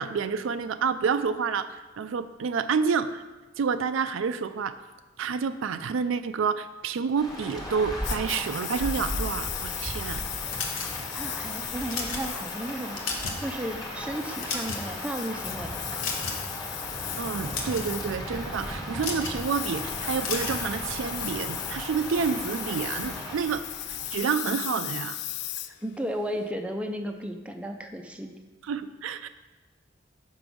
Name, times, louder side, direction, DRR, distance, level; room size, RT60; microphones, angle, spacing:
voice 1, 0.0-3.2 3.6-4.8 5.2-10.3 17.2-23.6 24.1-25.2 28.7-29.3, right 6 dB, 80° right, 11 dB, 0.4 m, -29 dB
Rain, 7.2-24.2, equal, 20° left, 1.3 m, -37 dB
Engine, 8.0-26.5, left 13 dB, 55° left, 0.3 m, -37 dB
sound 1, 10.5-11.2 11.7-12.3 12.8-13.5 13.8-13.9 14.3-15.0 16.0-16.5 17.3-17.9 19.0-19.4 20.2-20.6, left 4 dB, 80° left, 1.1 m, -33 dB
voice 2, 11.1-13.0 13.4-15.8 25.8-28.4, equal, 5° right, 4 dB, 0.5 m, -34 dB
6.1 x 5.2 x 6.1 m, 1.2 s
head